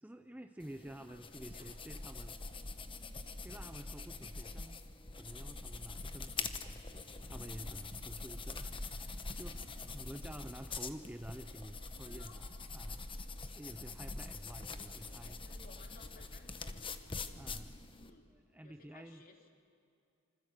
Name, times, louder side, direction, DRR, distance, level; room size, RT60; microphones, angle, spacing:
voice 1, 0.0-2.4 3.4-4.8 5.1-6.8 7.2-12.5 12.7-15.4 17.3-17.8 18.3-19.2, right 1 dB, 5° right, 7 dB, 0.6 m, -50 dB
sound 1, 0.6-18.1, left 3 dB, 25° left, 1.2 m, -44 dB
voice 2, 1.1-1.7 11.5-12.4 14.9-17.0 17.9-18.3 18.6-19.5, left 3 dB, 40° left, 2 dB, 3.5 m, -61 dB
27.5 x 25.5 x 8.2 m, 2.5 s
head